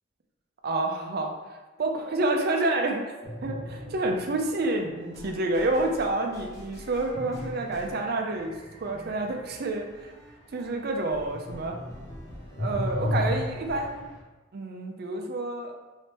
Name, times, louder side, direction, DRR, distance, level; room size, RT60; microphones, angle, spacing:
voice 1, 0.6-1.3 1.8-3.0 3.4-8.5 8.8-10.1 10.5-11.8 12.6-14.1 14.5-15.7, right 2 dB, 55° right, 3 dB, 0.5 m, -28 dB
sound 1, 1.8-10.8, equal, 40° left, 1.0 m, -50 dB
sound 2, 3.2-4.9 7.1-10.9 11.2-14.2, left 1 dB, 60° left, 0.9 m, -35 dB
sound 3, 4.9-13.9, equal, 20° left, 0.8 m, -47 dB
3.3 x 3.1 x 2.9 m, 1.2 s
head